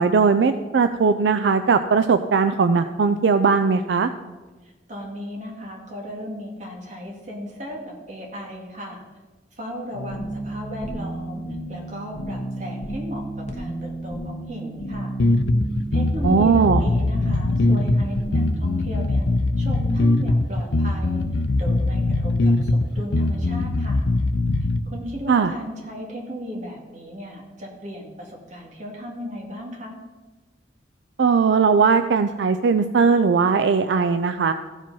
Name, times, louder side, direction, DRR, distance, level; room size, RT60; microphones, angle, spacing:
voice 1, 0.0-4.1 16.2-16.8 25.3-25.5 31.2-34.5, right 5 dB, 75° right, 10 dB, 0.4 m, -19 dB
voice 2, 4.6-9.0 9.6-11.4 11.7-13.2 13.5-15.2 15.9-19.2 19.6-24.0 24.9-29.9, equal, 45° right, -1 dB, 2.1 m, -36 dB
sound 1, 9.9-18.6, right 1 dB, 40° left, 1.1 m, -32 dB
sound 2, 15.2-24.8, left 2 dB, 85° left, 0.6 m, -21 dB
14.5 x 5.1 x 5.4 m, 1.2 s
head